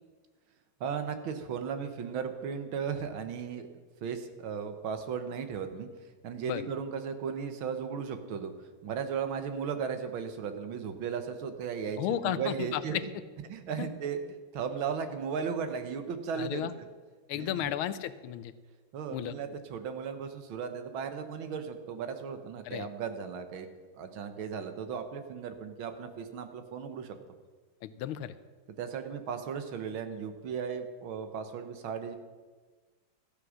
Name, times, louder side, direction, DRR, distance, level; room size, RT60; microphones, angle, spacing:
voice 1, 0.8-3.7 4.0-5.9 6.2-8.5 8.8-13.0 13.5-14.2 14.5-16.7 17.4-17.7 18.9-23.7 24.0-27.1 28.8-32.2, right 6 dB, 75° right, 8 dB, 1.8 m, -36 dB
voice 2, 12.0-13.0 13.8-13.9 16.3-16.7 17.3-18.5 19.1-19.4 22.6-22.9 27.8-28.3, left 11 dB, 90° left, 14 dB, 1.5 m, -33 dB
13.5 x 8.6 x 6.3 m, 1.4 s
omnidirectional pair, 2.3 m